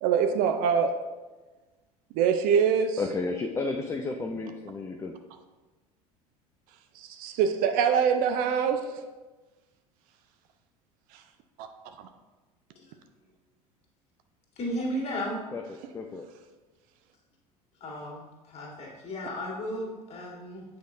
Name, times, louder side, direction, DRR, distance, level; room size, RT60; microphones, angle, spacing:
voice 1, 0.0-1.0 2.1-3.0 7.0-9.0 11.6-11.7, right 7 dB, 45° right, 7 dB, 0.5 m, -24 dB
voice 2, 3.0-5.1 15.5-15.6 15.9-16.3, left 3 dB, 15° left, 3 dB, 0.4 m, -32 dB
voice 3, 14.6-15.4 17.8-18.2 18.5-20.6, equal, 30° left, -2 dB, 1.9 m, -34 dB
8.1 x 4.6 x 2.6 m, 1.2 s
figure-of-eight pair, 70°, 20 cm